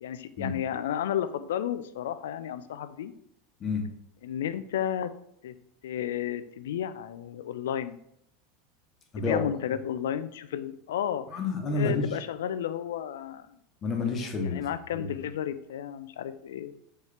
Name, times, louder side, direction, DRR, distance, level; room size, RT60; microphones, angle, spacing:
voice 1, 0.0-3.1 4.2-5.1 5.4-5.5 5.8-8.0 9.2-11.2 11.7-13.6 14.4-16.7, left 10 dB, 75° left, 12 dB, 0.3 m, -32 dB
voice 2, 11.3-12.0 13.8-14.6 14.9-15.1, left 3 dB, 35° left, 2 dB, 1.1 m, -29 dB
4.6 x 3.1 x 3.4 m, 0.73 s
hypercardioid pair, 90°, 0 cm